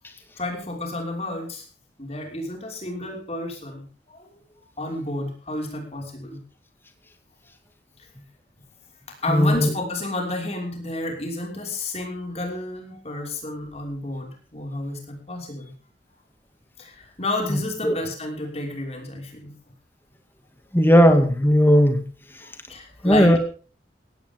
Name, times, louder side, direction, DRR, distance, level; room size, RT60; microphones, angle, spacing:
voice 1, 0.4-1.6 2.0-4.3 4.8-6.4 9.2-15.7 16.8-19.5 22.4-23.4, left 2 dB, 35° left, 1 dB, 5.8 m, -31 dB
voice 2, 9.3-9.7 17.8-17.9 20.7-22.0 23.0-23.4, equal, 10° left, 5 dB, 2.4 m, -16 dB
17.5 x 16.5 x 3.8 m, 0.39 s
head